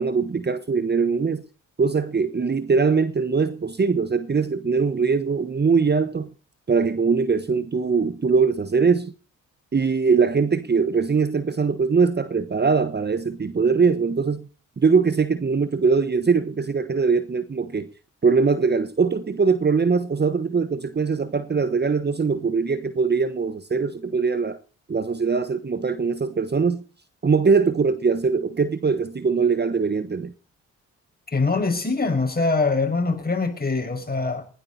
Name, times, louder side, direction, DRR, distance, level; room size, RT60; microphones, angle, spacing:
voice 1, 0.0-1.4 1.8-6.3 6.7-9.1 9.7-14.5 14.8-17.9 18.2-24.6 24.9-26.8 27.2-30.3, right 5 dB, 30° right, 1.1 m, -21 dB
voice 2, 31.3-34.4, left 3 dB, 25° left, 5.9 m, -23 dB
20.0 x 13.0 x 4.2 m
hypercardioid pair, 45°, 34 cm